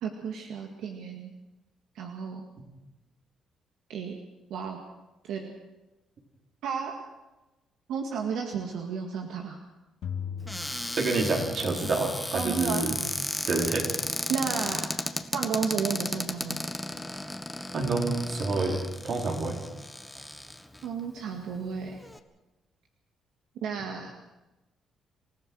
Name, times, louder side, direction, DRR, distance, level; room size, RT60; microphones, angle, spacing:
voice 1, 0.0-1.3 2.0-2.5 3.9-4.2 4.5-4.8 5.2-5.5 6.6-6.9 7.9-9.6 12.3-12.8 13.2-13.5 14.3-15.0 15.3-16.6 20.8-22.0 23.6-24.1, right 6 dB, 85° right, 2 dB, 2.0 m, -33 dB
sound 1, 10.0-11.8, left 7 dB, 75° left, 2.3 m, -38 dB
Cupboard open or close, 10.5-20.8 21.5-21.6 21.8-22.2, left 1 dB, 5° left, 1.5 m, -34 dB
voice 2, 11.0-13.0 13.5-13.9 17.7-19.6, right 3 dB, 55° right, 1 dB, 4.6 m, -28 dB
27.5 x 15.0 x 6.4 m, 1.1 s
cardioid pair, 90°, 0 cm